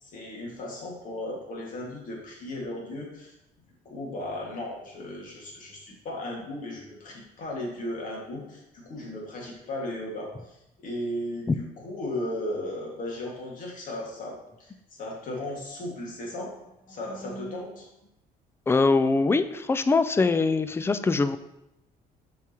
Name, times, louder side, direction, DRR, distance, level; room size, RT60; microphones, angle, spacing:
voice 1, 0.0-3.3 3.9-10.5 10.8-17.9, left 1 dB, 50° left, -2 dB, 1.9 m, -36 dB
voice 2, 18.7-21.4, left 3 dB, 15° left, 12 dB, 0.3 m, -23 dB
6.9 x 4.8 x 2.9 m, 0.88 s
cardioid pair, 110°, 17 cm